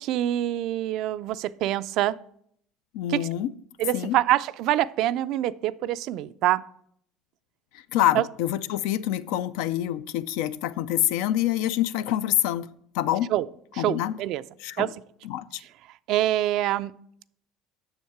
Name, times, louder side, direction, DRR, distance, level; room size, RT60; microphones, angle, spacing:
voice 1, 0.0-2.2 3.1-3.3 3.8-6.6 8.1-8.2 13.3-13.5 13.7-14.4 14.8-14.9 16.1-16.9, right 13 dB, 65° right, 0.3 m, -25 dB
voice 2, 2.9-3.5 3.9-4.2 7.9-12.7 12.9-13.3 13.8-14.1 14.6-14.9 15.2-15.6, left 12 dB, 80° left, 0.4 m, -26 dB
7.2 x 6.4 x 4.6 m
supercardioid pair, 100°, 0 cm